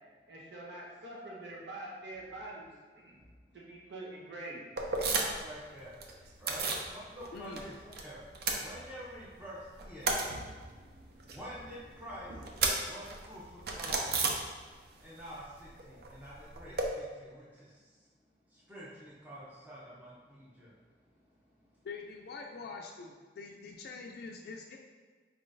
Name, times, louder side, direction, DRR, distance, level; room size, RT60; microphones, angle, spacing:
voice 1, 0.3-2.7 3.0-3.2 3.5-4.6, right 2 dB, 80° right, -4 dB, 1.0 m, -44 dB
sound 1, 4.8-5.5 5.8-6.9 7.2-8.0 8.3-9.3 9.6-15.0 15.2-16.9, right 3 dB, 60° right, 0.5 m, -34 dB
voice 2, 5.2-5.9 6.4-7.7 8.0-8.2 8.6-10.1 11.3-12.3 12.9-13.4 13.7-14.1 15.0-17.6 18.7-20.7, equal, 10° right, -8 dB, 0.6 m, -47 dB
voice 3, 21.8-24.8, left 4 dB, 60° left, 1 dB, 0.3 m, -44 dB
4.5 x 3.7 x 2.6 m, 1.5 s
head